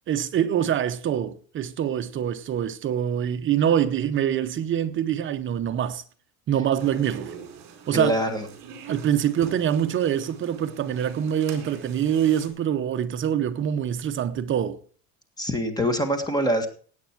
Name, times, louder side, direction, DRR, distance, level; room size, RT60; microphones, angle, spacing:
voice 1, 0.1-6.0 6.5-7.3 7.9-8.1 8.9-14.8, right 9 dB, 30° right, 0.7 m, -25 dB
sound 1, 6.8-12.5, right 7 dB, 45° right, 4.3 m, -43 dB
voice 2, 7.9-8.5 15.4-16.7, equal, 10° left, 1.6 m, -24 dB
17.0 x 9.0 x 4.5 m
cardioid pair, 160°, 44 cm